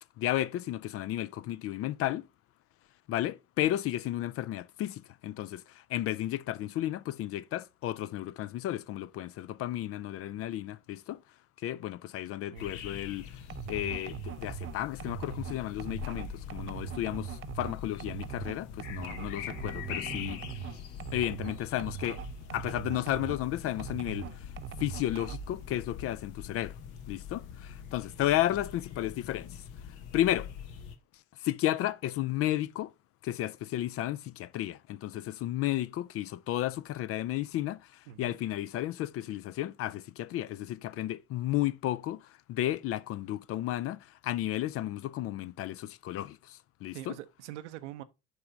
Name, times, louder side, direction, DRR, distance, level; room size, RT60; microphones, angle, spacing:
voice 1, 0.2-2.3 3.1-11.2 11.6-13.4 13.7-20.4 21.1-22.2 22.5-24.4 24.8-26.8 27.1-29.6 30.1-30.5 31.4-32.9 33.2-47.2, left 13 dB, 40° left, 0.4 m, -33 dB
voice 2, 12.5-12.8 20.1-20.7 38.1-38.4 46.9-48.0, right 13 dB, 75° right, 0.7 m, -45 dB
sound 1, 12.6-31.0, left 8 dB, 65° left, 1.0 m, -44 dB
sound 2, 13.5-23.5 23.8-25.6, right 11 dB, 35° right, 0.5 m, -41 dB
sound 3, 18.9-22.6, left 4 dB, 15° left, 0.8 m, -52 dB
6.9 x 3.4 x 5.1 m
figure-of-eight pair, 55°, 36 cm